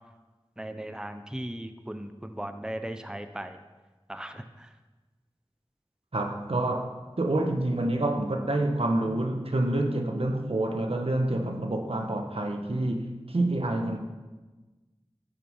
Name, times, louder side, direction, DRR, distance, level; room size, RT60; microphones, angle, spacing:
voice 1, 0.6-3.6 4.1-4.4, right 1 dB, 10° right, 8 dB, 0.7 m, -37 dB
voice 2, 6.1-14.0, right 1 dB, 75° right, 4 dB, 1.2 m, -28 dB
12.5 x 6.6 x 5.6 m, 1.2 s
wide cardioid pair, 40°, 10 cm